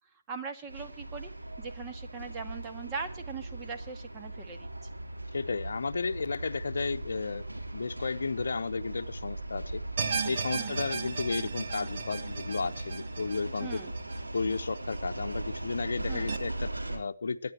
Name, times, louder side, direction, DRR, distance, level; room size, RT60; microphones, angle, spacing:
voice 1, 0.3-1.3 1.6-4.7 10.5-10.8 13.6-13.9 16.1-16.3, right 5 dB, 20° right, 4 dB, 2.0 m, -40 dB
sound 1, 0.7-17.0, right 2 dB, 85° right, 3.5 m, -39 dB
voice 2, 5.3-7.4 7.7-9.8 10.2-13.8 14.3-17.5, left 4 dB, 65° left, 10 dB, 0.8 m, -33 dB
sound 2, 10.0-15.2 15.6-15.7 16.3-16.4, right 5 dB, 50° right, 1.7 m, -36 dB
23.5 x 10.0 x 3.0 m, 0.37 s
figure-of-eight pair, 140°, 0 cm